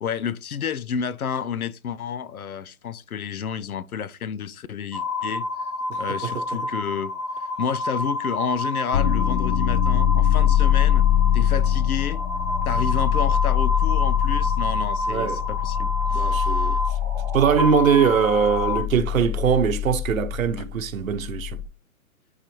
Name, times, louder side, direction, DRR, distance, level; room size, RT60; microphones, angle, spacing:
voice 1, 0.0-5.5 6.0-7.1 7.4-11.1 11.3-12.2 12.7-16.8, left 7 dB, 90° left, 0.6 m, -30 dB
sound 1, 4.9-18.8, left 2 dB, ahead, 0.8 m, -29 dB
voice 2, 5.9-6.4 15.1-15.4 16.1-17.0 17.3-21.6, right 7 dB, 70° right, 0.9 m, -22 dB
sound 2, 8.9-21.7, left 11 dB, 35° left, 0.5 m, -23 dB
9.4 x 4.0 x 3.0 m
hypercardioid pair, 135°, 42 cm